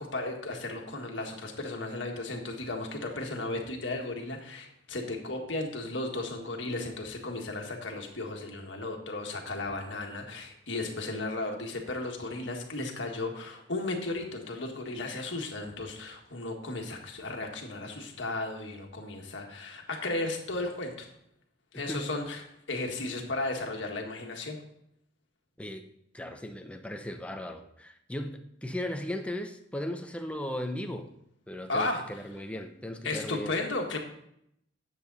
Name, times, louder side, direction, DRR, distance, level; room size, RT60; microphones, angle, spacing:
voice 1, 0.0-21.1 21.7-22.4 22.7-24.6 31.7-32.0 33.0-34.0, left 2 dB, 70° left, 2 dB, 1.7 m, -35 dB
voice 2, 21.7-22.1 25.6-25.9 26.1-31.1 31.5-33.6, left 1 dB, 5° left, 6 dB, 0.7 m, -37 dB
10.0 x 7.5 x 4.0 m, 0.74 s
head